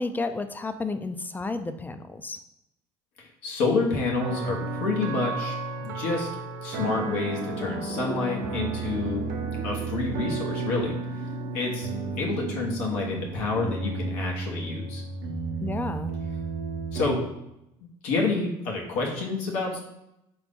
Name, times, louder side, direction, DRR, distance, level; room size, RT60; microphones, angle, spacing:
voice 1, 0.0-2.4 15.6-16.1, left 3 dB, 15° left, 10 dB, 0.4 m, -31 dB
voice 2, 3.4-6.3 6.6-9.2 9.6-11.0 11.5-11.9 12.2-15.0 16.9-17.2 18.0-19.8, left 3 dB, 80° left, -1 dB, 1.1 m, -28 dB
sound 1, 4.2-17.2, right 3 dB, 85° right, 0.8 m, -33 dB
sound 2, 7.9-13.4, right 5 dB, 60° right, 0.6 m, -42 dB
3.9 x 3.0 x 3.5 m, 0.84 s
supercardioid pair, 85°, 12 cm